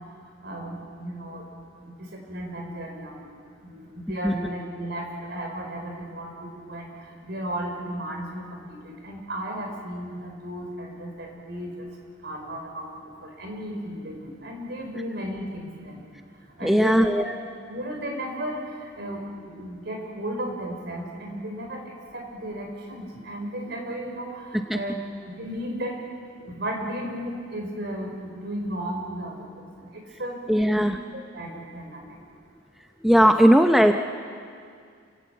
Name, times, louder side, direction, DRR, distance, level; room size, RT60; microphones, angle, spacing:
voice 1, 0.4-1.4 1.8-3.2 3.6-11.9 12.2-16.0 16.6-17.3 17.7-25.0 25.4-25.9 26.5-32.2, equal, 55° right, 1 dB, 5.1 m, -34 dB
voice 2, 16.6-17.3 24.5-24.8 30.5-31.0 33.0-33.9, equal, ahead, 5 dB, 0.6 m, -18 dB
29.0 x 17.0 x 8.3 m, 2.2 s
head